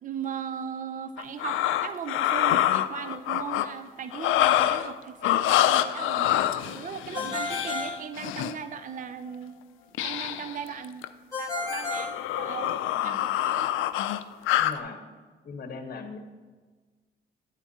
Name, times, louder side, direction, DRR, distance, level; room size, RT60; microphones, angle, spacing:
voice 1, 0.0-6.4 6.6-9.6 10.0-11.1 11.4-13.7, right 7 dB, 40° right, 11 dB, 0.5 m, -38 dB
sound 1, 1.2-3.7 4.1-4.9 5.2-8.5 9.9-10.5 10.8-11.1 11.6-14.8, left 13 dB, 85° left, 0.4 m, -26 dB
Ringtone, 7.1-8.8 11.3-13.0, left 3 dB, 15° left, 2.1 m, -33 dB
voice 2, 12.9-13.3 14.6-15.0 15.4-16.2, left 4 dB, 50° left, 5 dB, 1.2 m, -40 dB
10.5 x 8.0 x 2.8 m, 1.4 s
cardioid pair, 90°, 20 cm